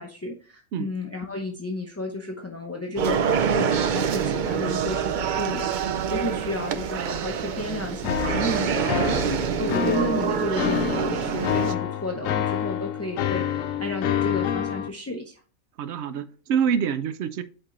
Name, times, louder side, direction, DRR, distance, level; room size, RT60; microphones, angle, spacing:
voice 1, 0.0-15.4, left 2 dB, 15° left, 0.5 m, -32 dB
sound 1, 3.0-11.7, right 7 dB, 85° right, 0.4 m, -26 dB
sound 2, 8.0-14.9, left 8 dB, 75° left, 1.0 m, -27 dB
voice 2, 15.8-17.4, right 7 dB, 65° right, 0.8 m, -26 dB
8.7 x 4.4 x 3.1 m
omnidirectional pair, 1.4 m